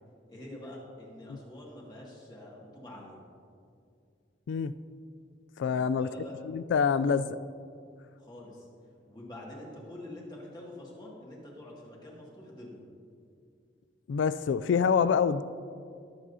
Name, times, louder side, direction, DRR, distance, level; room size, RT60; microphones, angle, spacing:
voice 1, 0.3-3.2 5.6-6.4 8.2-8.7 9.1-12.8, left 1 dB, 25° left, -4 dB, 2.1 m, -46 dB
voice 2, 5.6-6.1 6.4-7.4 14.1-15.4, left 6 dB, 85° left, 15 dB, 0.3 m, -26 dB
20.5 x 7.5 x 2.8 m, 2.3 s
head